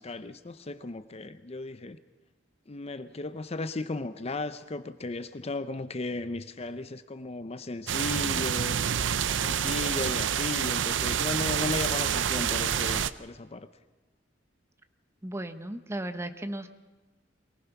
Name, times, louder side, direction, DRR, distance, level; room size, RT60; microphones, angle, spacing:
voice 1, 0.0-2.0 2.7-8.8 9.3-13.7, left 2 dB, 35° left, 12 dB, 0.7 m, -35 dB
sound 1, 7.9-13.1, right 8 dB, 80° right, 0.6 m, -28 dB
voice 2, 15.2-16.7, right 1 dB, 15° right, 9 dB, 0.9 m, -35 dB
24.0 x 18.5 x 5.9 m, 1.2 s
head